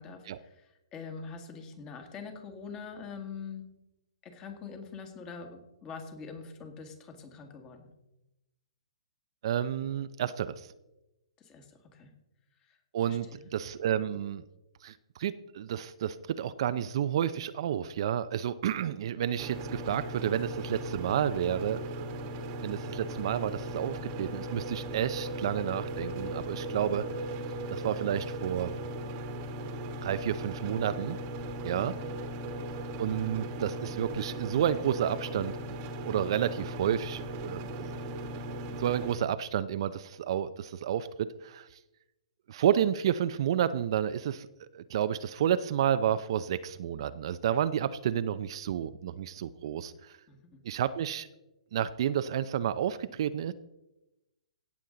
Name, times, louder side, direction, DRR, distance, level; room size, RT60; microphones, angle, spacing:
voice 1, 0.0-3.7 4.2-7.9 11.4-12.1 12.6-12.8 13.1-13.5 32.0-32.2 50.3-50.6, left 5 dB, 20° left, 5 dB, 1.8 m, -44 dB
voice 2, 9.4-10.7 12.9-14.4 14.8-22.2 22.6-27.3 27.7-28.7 30.0-31.2 31.6-31.9 33.0-35.6 36.0-38.0 38.8-41.7 42.5-44.5 44.7-50.1 50.6-51.3 51.7-53.5, right 10 dB, 50° right, 13 dB, 0.5 m, -30 dB
sound 1, 19.4-39.2, right 1 dB, 30° right, 1.3 m, -38 dB
17.0 x 7.2 x 3.9 m, 0.96 s
hypercardioid pair, 150°, 3 cm